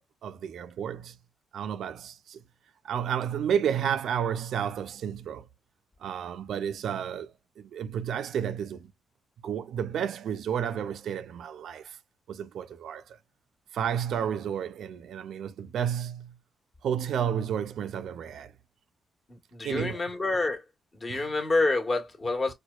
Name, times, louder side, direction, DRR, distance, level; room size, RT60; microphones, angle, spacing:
voice 1, 0.2-1.2 1.5-2.4 2.8-5.5 6.0-8.9 9.4-12.0 12.3-13.2 13.7-16.4 16.8-18.5 19.6-20.0 21.1-21.3, right 8 dB, 80° right, 0.3 m, -31 dB
voice 2, 19.3-20.6 20.9-22.5, left 2 dB, 40° left, 1.3 m, -28 dB
4.4 x 2.2 x 2.3 m
cardioid pair, 60°, 0 cm